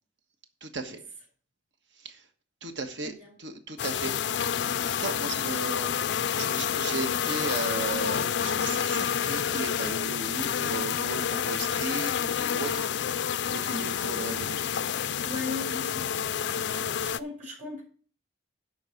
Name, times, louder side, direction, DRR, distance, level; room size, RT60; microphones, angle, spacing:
voice 1, 0.6-1.0 2.0-2.2 2.6-3.1 3.4-4.1 4.8-5.9 6.4-12.9 13.5-14.6, right 3 dB, 65° right, 7 dB, 1.3 m, -35 dB
voice 2, 3.0-3.4 15.2-16.2 17.0-17.8, left 3 dB, 40° right, 0 dB, 4.4 m, -37 dB
sound 1, 3.8-17.2, left 8 dB, 60° left, 0.4 m, -29 dB
11.0 x 4.1 x 7.8 m, 0.42 s
head